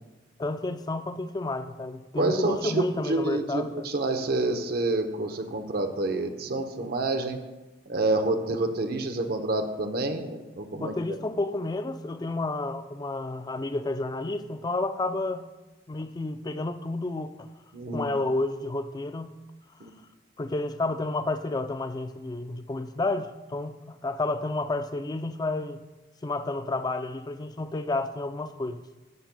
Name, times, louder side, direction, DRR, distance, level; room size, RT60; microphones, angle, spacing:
voice 1, 0.4-3.9 10.7-15.5 15.9-17.5 17.9-19.4 20.4-25.8 26.2-28.8, left 2 dB, 20° left, 11 dB, 0.4 m, -31 dB
voice 2, 2.2-7.4 7.9-10.9 17.7-18.1 19.8-19.9, right 2 dB, 55° right, 5 dB, 0.8 m, -28 dB
12.0 x 8.2 x 2.2 m, 1.1 s
head